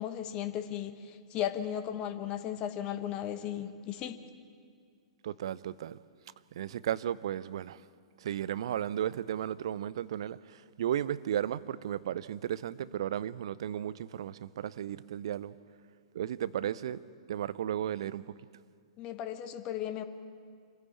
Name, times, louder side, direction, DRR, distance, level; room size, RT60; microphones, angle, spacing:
voice 1, 0.0-4.2 19.0-20.0, left 10 dB, 30° left, 1.2 m, -36 dB
voice 2, 5.2-6.0 6.6-7.8 8.2-15.5 16.1-17.0 17.3-18.2, right 10 dB, 55° right, 0.6 m, -34 dB
25.5 x 15.5 x 8.5 m
figure-of-eight pair, 110°, 3 cm